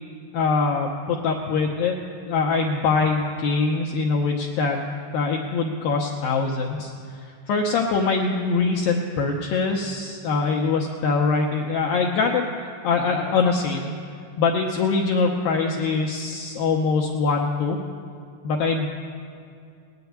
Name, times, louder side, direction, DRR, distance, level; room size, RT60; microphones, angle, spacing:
voice 1, 0.3-2.0 2.3-4.8 5.1-6.9 7.2-13.9 14.4-17.8 18.4-18.9, left 4 dB, 80° left, 0 dB, 2.1 m, -23 dB
19.0 x 6.9 x 9.4 m, 2.4 s
omnidirectional pair, 5.0 m